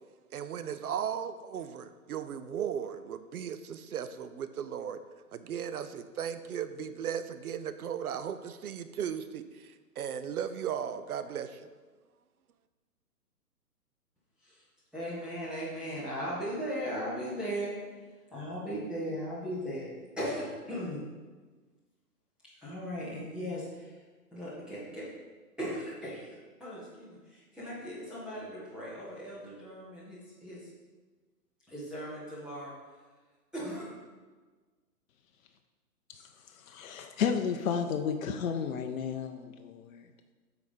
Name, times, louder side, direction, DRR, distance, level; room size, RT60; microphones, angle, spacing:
voice 1, 0.3-5.0 5.3-11.7, right 8 dB, 65° right, 11 dB, 0.7 m, -36 dB
voice 2, 14.9-18.0 18.3-19.9 20.2-21.0 22.6-24.0 24.3-25.1 25.6-30.7 31.7-32.7 33.5-33.9, equal, ahead, -11 dB, 0.9 m, -38 dB
voice 3, 36.6-40.1, left 7 dB, 60° left, 6 dB, 0.7 m, -32 dB
8.2 x 4.1 x 5.2 m, 1.4 s
hypercardioid pair, 145°, 48 cm